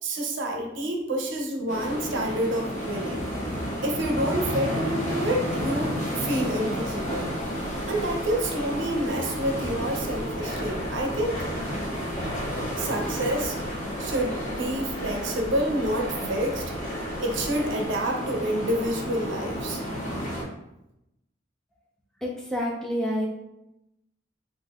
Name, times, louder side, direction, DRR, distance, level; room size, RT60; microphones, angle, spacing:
voice 1, 0.0-3.2 3.8-7.3 7.9-11.4 12.8-13.5 14.0-16.6 17.2-19.8, right 1 dB, 75° right, 1 dB, 0.6 m, -28 dB
sound 1, 1.7-20.4, equal, 40° left, 0.7 m, -32 dB
sound 2, 6.3-17.8, equal, 70° left, 1.5 m, -40 dB
voice 2, 22.2-23.3, equal, 5° left, -3 dB, 0.4 m, -28 dB
3.6 x 2.6 x 2.4 m, 0.86 s
head